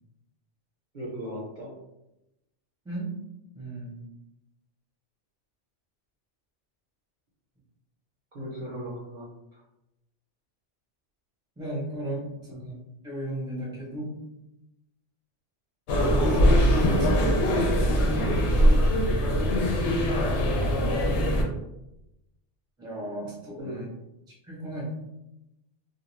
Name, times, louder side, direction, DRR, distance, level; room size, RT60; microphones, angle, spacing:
voice 1, 0.9-1.7 8.3-9.6 12.5-12.6 23.6-23.8, equal, 50° right, -5 dB, 0.7 m, -37 dB
voice 2, 2.8-3.2 3.5-4.0 11.6-12.7 13.0-14.1 15.9-18.2 18.8-18.9 22.8-23.9 24.3-24.9, right 1 dB, 5° right, -5 dB, 0.6 m, -36 dB
sound 1, 15.9-21.4, equal, 75° left, 0.8 m, -22 dB
2.3 x 2.2 x 3.1 m, 0.89 s
omnidirectional pair, 1.2 m